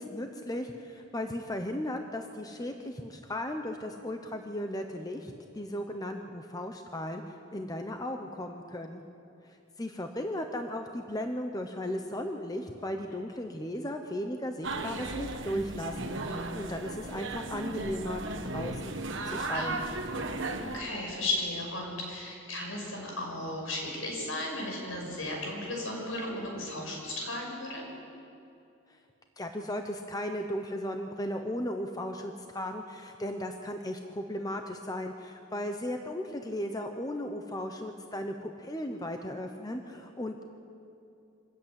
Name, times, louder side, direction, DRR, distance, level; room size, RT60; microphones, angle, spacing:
voice 1, 0.0-7.2 7.5-9.0 9.8-18.2 18.5-18.9 19.3-19.8 29.4-40.4, left 1 dB, 20° left, 4 dB, 0.9 m, -36 dB
sound 1, 14.6-20.8, right 2 dB, 60° right, 1.5 m, -35 dB
voice 2, 20.5-27.8, left 2 dB, 75° left, 0 dB, 6.3 m, -35 dB
25.0 x 14.0 x 8.9 m, 2.7 s
head